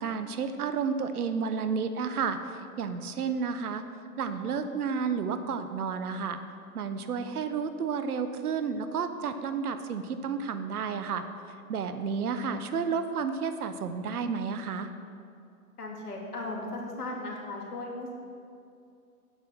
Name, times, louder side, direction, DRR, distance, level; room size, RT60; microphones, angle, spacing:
voice 1, 0.0-3.8 4.2-6.4 6.7-11.3 11.7-14.9, right 6 dB, 80° right, 9 dB, 1.1 m, -31 dB
voice 2, 15.8-18.2, left 2 dB, 85° left, 0 dB, 2.6 m, -37 dB
9.5 x 7.9 x 6.5 m, 2.5 s
hypercardioid pair, 130°, 45 cm